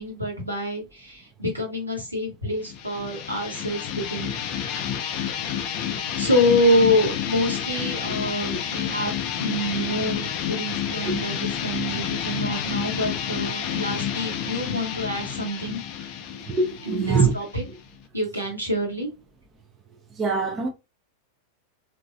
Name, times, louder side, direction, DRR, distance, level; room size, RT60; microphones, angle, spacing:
voice 1, 0.0-4.3 5.6-15.8 16.9-17.6 18.1-19.1, left 1 dB, 85° right, 1.2 m, -26 dB
sound 1, 2.6-18.0, left 9 dB, 40° left, 0.4 m, -30 dB
voice 2, 16.5-17.3 20.2-20.7, right 4 dB, 25° right, 0.5 m, -23 dB
3.0 x 2.5 x 2.4 m
figure-of-eight pair, 90°, 0 cm